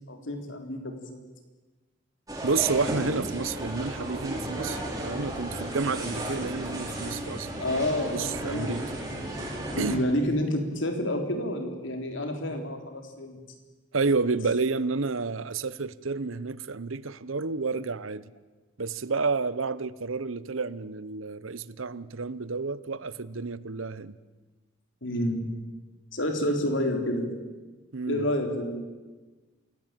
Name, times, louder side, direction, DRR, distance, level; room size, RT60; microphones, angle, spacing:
voice 1, 0.1-1.2 7.6-8.8 9.7-13.4 25.0-25.5 26.1-27.4 28.1-28.8, left 1 dB, 70° left, 3.8 m, -29 dB
sound 1, 2.3-10.0, right 1 dB, 15° right, 5.0 m, -34 dB
voice 2, 2.4-7.5 8.1-8.9 9.8-10.1 13.9-18.2 18.8-24.2 27.9-28.3, right 4 dB, 90° right, 0.9 m, -30 dB
27.5 x 17.0 x 9.0 m
head